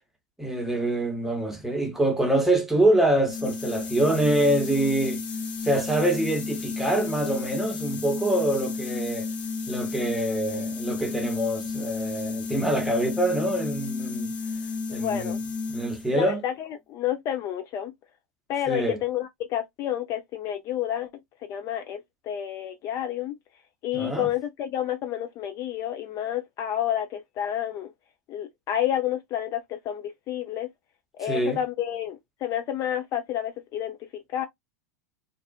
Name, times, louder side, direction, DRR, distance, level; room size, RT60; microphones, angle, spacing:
voice 1, 0.4-5.2 5.6-9.3 9.7-14.3 14.9-15.4 15.7-16.4 18.7-19.0 23.9-24.3 31.2-31.6, right 1 dB, 5° right, 0.9 m, -25 dB
sound 1, 3.3-16.2, left 4 dB, 60° left, 0.9 m, -32 dB
voice 2, 14.9-15.4 16.1-17.9 18.5-21.1 21.5-23.4 23.8-27.9 28.3-30.7 31.2-34.5, left 11 dB, 40° left, 0.4 m, -30 dB
2.5 x 2.3 x 2.3 m
hypercardioid pair, 100°, 9 cm